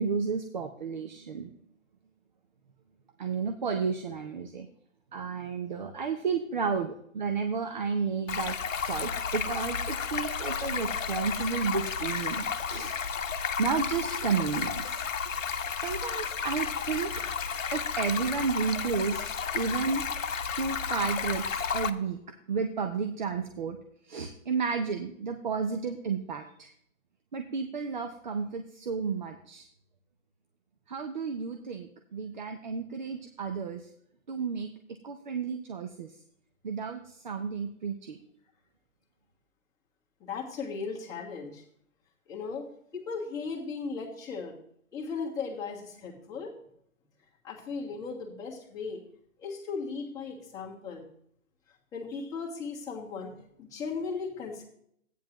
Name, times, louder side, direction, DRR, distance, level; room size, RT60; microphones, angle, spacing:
voice 1, 0.0-1.5 3.2-4.7 5.1-8.6 8.8-13.0 13.6-15.1 15.8-17.1 17.7-19.2 19.5-20.0 20.6-22.2 22.5-23.8 24.0-26.7 27.3-29.7 30.9-33.9 34.3-34.7 35.0-36.1 36.6-38.2, right 5 dB, 35° right, 6 dB, 0.6 m, -32 dB
Stream, 8.3-21.9, left 6 dB, 65° left, 0.9 m, -32 dB
voice 2, 40.2-41.6 42.3-44.6 44.9-46.5 47.4-49.0 49.4-51.1 51.9-53.3 53.6-54.6, left 4 dB, 10° left, -4 dB, 1.4 m, -37 dB
14.0 x 9.2 x 3.0 m, 0.69 s
figure-of-eight pair, 145°, 42 cm